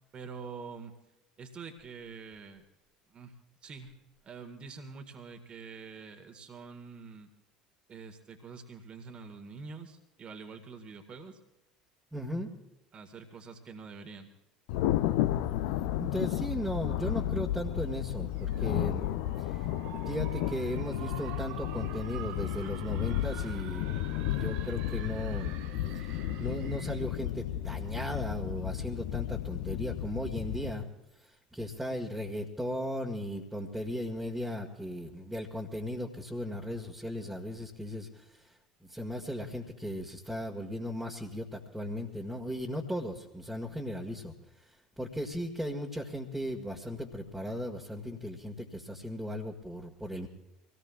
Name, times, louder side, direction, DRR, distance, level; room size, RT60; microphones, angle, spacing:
voice 1, 0.1-1.0 1.4-2.6 3.1-3.4 3.6-3.9 4.2-7.3 7.9-11.4 12.9-14.3, right 5 dB, 35° right, 6 dB, 1.8 m, -46 dB
voice 2, 12.1-12.5 16.0-19.1 19.4-19.6 19.9-25.5 25.9-30.9 31.5-38.4 38.8-44.3 45.0-50.3, equal, 5° right, -3 dB, 1.8 m, -37 dB
Thunder, 14.7-30.7, left 12 dB, 60° left, 0.7 m, -33 dB
sound 1, 18.3-27.2, right 9 dB, 55° right, 1.1 m, -48 dB
25.5 x 18.0 x 2.4 m, 0.93 s
figure-of-eight pair, 65°, 3 cm